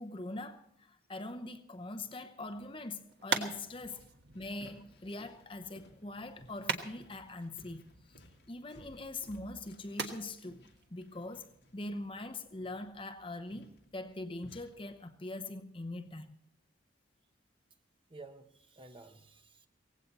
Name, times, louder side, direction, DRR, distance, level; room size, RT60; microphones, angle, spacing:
voice 1, 0.0-4.0 4.3-10.6 10.9-16.4, left 2 dB, 25° left, 0.8 m, -43 dB
sound 1, 2.4-12.1, right 4 dB, 55° right, 1.4 m, -43 dB
sound 2, 4.3-15.0, left 1 dB, 60° left, 2.4 m, -60 dB
voice 2, 18.1-19.7, right 3 dB, 25° right, 0.9 m, -53 dB
18.0 x 16.0 x 4.1 m
head